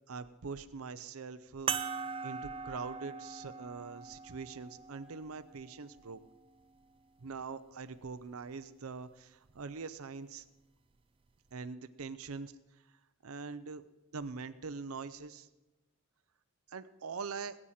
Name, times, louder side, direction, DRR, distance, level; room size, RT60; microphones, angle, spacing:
voice 1, 0.1-6.2 7.2-10.4 11.5-13.8 14.1-15.5 16.7-17.6, right 4 dB, 75° right, 12 dB, 0.6 m, -43 dB
sound 1, 1.7-6.5 7.3-7.4 9.5-9.6, right 6 dB, 25° right, 0.4 m, -41 dB
20.0 x 8.7 x 4.3 m, 1.1 s
head